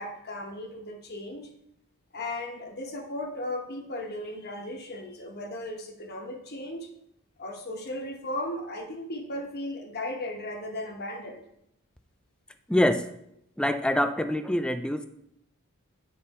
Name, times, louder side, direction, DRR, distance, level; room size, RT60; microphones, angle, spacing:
voice 1, 0.0-1.5 2.1-6.9 7.4-11.4, left 1 dB, 45° left, 4 dB, 1.1 m, -36 dB
voice 2, 12.7-13.0 13.6-15.1, left 1 dB, 5° left, 9 dB, 0.4 m, -25 dB
9.5 x 5.6 x 4.2 m, 0.77 s
head